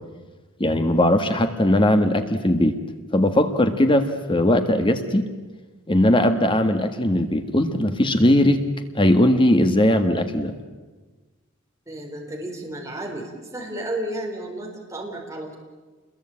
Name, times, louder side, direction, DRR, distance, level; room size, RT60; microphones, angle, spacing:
voice 1, 0.6-2.7 3.1-5.3 5.9-8.6 8.9-10.5, left 1 dB, 25° left, 7 dB, 1.6 m, -19 dB
voice 2, 11.9-15.5, right 1 dB, 15° right, 0 dB, 4.5 m, -32 dB
28.5 x 22.0 x 8.7 m, 1.3 s
head